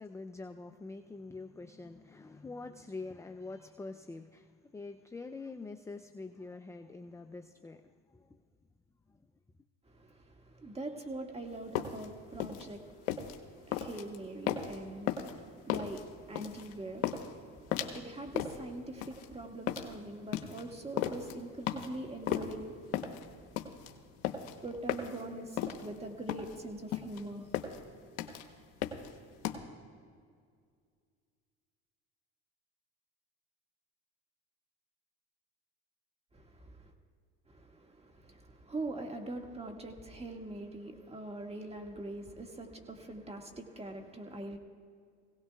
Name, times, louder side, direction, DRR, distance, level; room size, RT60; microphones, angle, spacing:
voice 1, 0.0-8.4 9.1-9.2, left 3 dB, 10° left, 7 dB, 0.4 m, -45 dB
voice 2, 9.9-23.1 24.6-27.5 36.3-36.9 37.5-44.6, right 2 dB, 20° right, 2 dB, 1.9 m, -43 dB
sound 1, 11.5-29.6, left 9 dB, 80° left, 1.1 m, -36 dB
21.0 x 17.0 x 2.3 m, 2.1 s
supercardioid pair, 75°, 34 cm